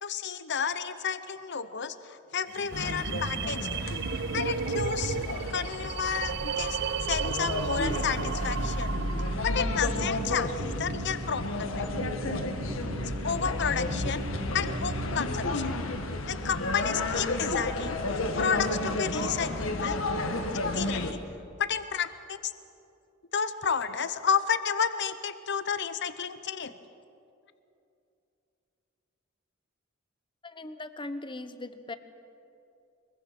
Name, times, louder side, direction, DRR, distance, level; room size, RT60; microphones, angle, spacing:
voice 1, 0.0-3.9 4.3-5.2 5.5-6.8 7.1-9.0 9.4-11.9 13.0-14.2 14.5-15.8 16.3-20.0 20.5-21.2 21.6-22.4 23.3-26.8, left 6 dB, 60° left, 12 dB, 0.9 m, -31 dB
sound 1, 2.5-9.5, right 6 dB, 60° right, 0.5 m, -34 dB
sound 2, 2.7-21.1, left 2 dB, 85° left, 1.7 m, -32 dB
sound 3, 7.8-15.8, right 1 dB, 75° right, 1.4 m, -38 dB
voice 2, 30.4-32.0, left 2 dB, 25° left, 11 dB, 0.9 m, -39 dB
24.0 x 22.0 x 6.1 m, 2.7 s
head